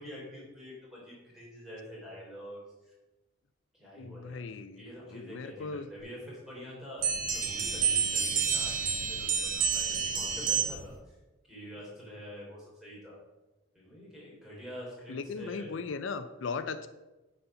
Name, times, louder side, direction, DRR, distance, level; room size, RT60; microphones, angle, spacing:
voice 1, 0.0-2.9 3.7-4.4 4.7-7.1 7.3-11.1 11.5-13.2 13.7-16.0, equal, ahead, -6 dB, 3.2 m, -46 dB
voice 2, 4.0-4.8 5.1-5.9 15.1-16.9, left 4 dB, 85° left, 12 dB, 0.5 m, -37 dB
sound 1, 7.0-10.9, right 6 dB, 45° right, 1.0 m, -29 dB
9.7 x 4.2 x 5.5 m, 1.1 s
head